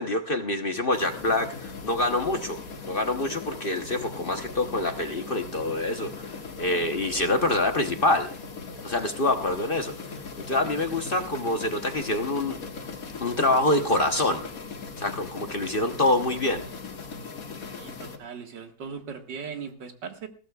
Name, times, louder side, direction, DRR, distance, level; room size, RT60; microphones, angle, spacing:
voice 1, 0.0-2.6 2.9-8.3 8.8-9.9 10.5-12.6 13.2-14.5 15.0-16.6, left 2 dB, 40° left, 6 dB, 1.0 m, -26 dB
sound 1, 0.9-18.2, left 4 dB, 55° left, 2.0 m, -39 dB
voice 2, 17.7-20.3, right 6 dB, 85° right, 5 dB, 2.4 m, -39 dB
20.5 x 15.5 x 2.4 m, 0.39 s
omnidirectional pair, 1.9 m